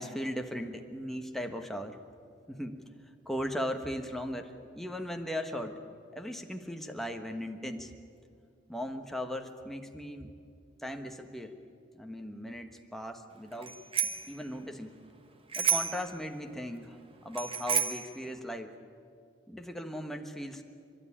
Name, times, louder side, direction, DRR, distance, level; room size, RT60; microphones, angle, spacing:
voice 1, 0.0-2.0 2.5-2.8 3.2-5.8 6.1-7.9 8.7-10.3 10.8-11.6 11.9-13.8 14.3-14.9 15.6-17.0 17.2-18.7 19.5-20.6, equal, ahead, 4 dB, 1.3 m, -38 dB
Bicycle bell, 13.6-14.3 15.5-16.1 17.3-18.1, right 7 dB, 30° right, 1.2 m, -30 dB
30.0 x 12.5 x 10.0 m, 2.3 s
head